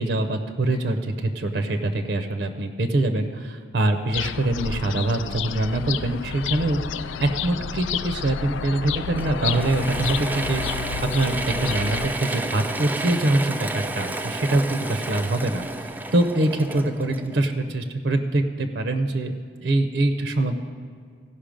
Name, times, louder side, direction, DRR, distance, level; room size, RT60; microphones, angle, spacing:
voice 1, 0.0-6.8 7.2-10.8 11.1-20.6, right 2 dB, 70° right, 7 dB, 0.6 m, -24 dB
sound 1, 4.1-12.1, left 8 dB, 85° left, 0.3 m, -31 dB
Mechanisms / Drill, 9.1-17.8, right 2 dB, 10° right, 0.3 m, -31 dB
16.5 x 5.5 x 5.1 m, 2.1 s
head